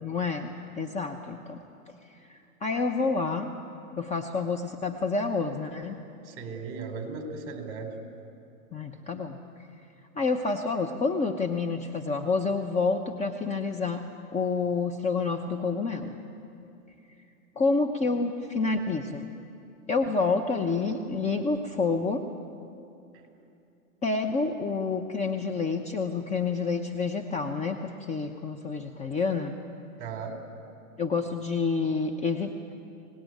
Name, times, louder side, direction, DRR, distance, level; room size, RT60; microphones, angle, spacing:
voice 1, 0.0-1.6 2.3-3.5 4.0-6.0 8.7-9.4 10.2-14.1 14.3-16.2 17.6-19.3 19.9-22.2 24.0-29.6 31.0-32.7, left 4 dB, 15° left, 4 dB, 0.9 m, -28 dB
voice 2, 6.2-7.9 30.0-30.3, right 5 dB, 30° right, 4 dB, 4.0 m, -36 dB
25.0 x 19.0 x 9.4 m, 2.7 s
hypercardioid pair, 125°, 44 cm